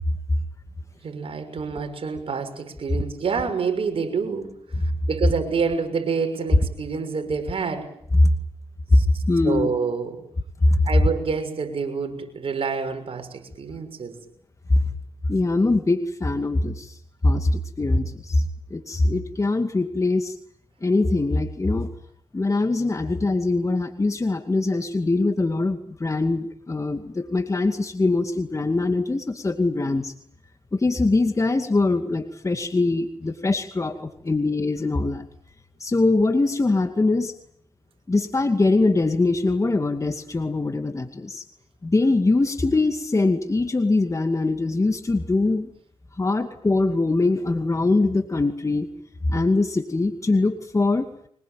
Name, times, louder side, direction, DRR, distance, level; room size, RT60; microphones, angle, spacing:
voice 1, 1.0-4.8 5.1-7.9 8.9-10.2 10.8-14.2, right 5 dB, 60° right, 6 dB, 6.4 m, -28 dB
voice 2, 9.3-9.7 10.6-10.8 15.3-17.0 17.2-18.4 18.7-20.4 20.8-21.9 22.3-30.1 30.7-35.3 35.8-37.3 38.1-41.4 41.8-45.7 46.2-48.9 49.2-51.1, left 2 dB, 30° left, 7 dB, 2.3 m, -22 dB
24.0 x 21.5 x 9.3 m, 0.67 s
cardioid pair, 55°, 11 cm